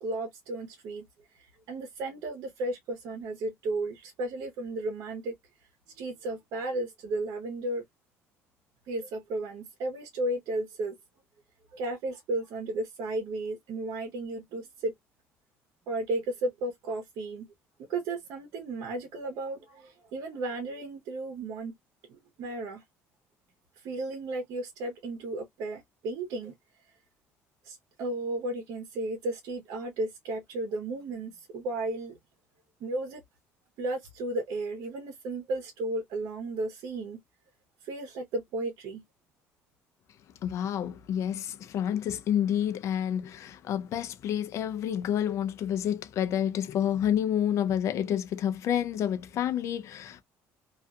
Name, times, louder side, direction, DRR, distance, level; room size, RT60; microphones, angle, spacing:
voice 1, 0.0-1.1 1.7-5.3 6.0-7.8 8.9-10.9 11.7-14.9 15.9-17.5 17.9-21.7 22.1-22.8 23.8-26.5 27.6-32.2 32.8-33.2 33.8-37.2 37.8-39.0, right 2 dB, 75° right, 0.9 m, -34 dB
voice 2, 40.4-50.2, left 10 dB, 60° left, 0.5 m, -29 dB
2.6 x 2.4 x 2.3 m
cardioid pair, 105°, 6 cm